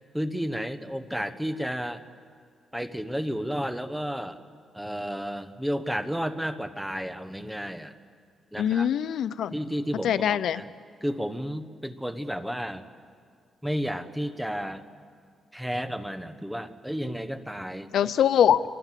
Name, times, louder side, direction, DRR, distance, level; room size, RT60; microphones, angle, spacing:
voice 1, 0.1-2.0 2.7-4.4 4.7-7.9 8.5-8.9 9.5-10.7 11.0-12.8 13.6-14.9 15.5-17.9, equal, 5° right, 9 dB, 1.1 m, -32 dB
voice 2, 8.6-9.5 10.0-10.6 17.9-18.6, left 9 dB, 75° left, 15 dB, 0.6 m, -23 dB
27.5 x 23.5 x 7.6 m, 2.1 s
cardioid pair, 135°, 0 cm